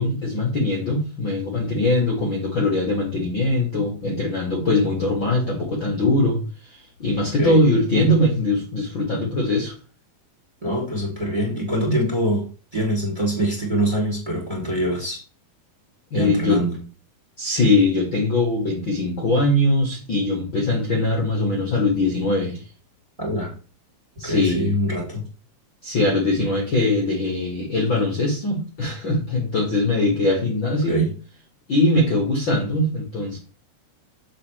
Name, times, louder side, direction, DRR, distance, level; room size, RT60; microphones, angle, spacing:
voice 1, 0.0-6.4 6.7-9.7 11.9-12.0 16.1-16.6 17.4-22.6 24.2-24.7 25.8-31.1 31.7-33.4, left 2 dB, 40° left, -1 dB, 2.2 m, -21 dB
voice 2, 10.6-12.4 12.7-15.2 16.1-16.8 23.2-23.5 24.2-25.2 30.9-31.1, equal, 10° right, -1 dB, 3.1 m, -24 dB
8.4 x 7.5 x 3.4 m, 0.35 s
omnidirectional pair, 4.6 m